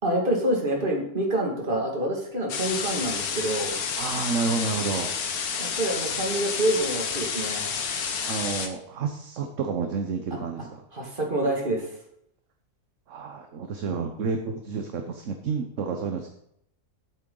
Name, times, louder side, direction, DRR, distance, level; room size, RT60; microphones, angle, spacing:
voice 1, 0.0-3.8 5.6-7.7 10.9-11.9, right 1 dB, 35° right, 0 dB, 2.3 m, -27 dB
sound 1, 2.5-8.7, left 6 dB, 70° left, 1.5 m, -30 dB
voice 2, 4.0-5.1 8.3-10.8 13.1-16.3, right 5 dB, 55° right, 5 dB, 1.2 m, -30 dB
11.5 x 8.4 x 3.9 m, 0.73 s
omnidirectional pair, 1.7 m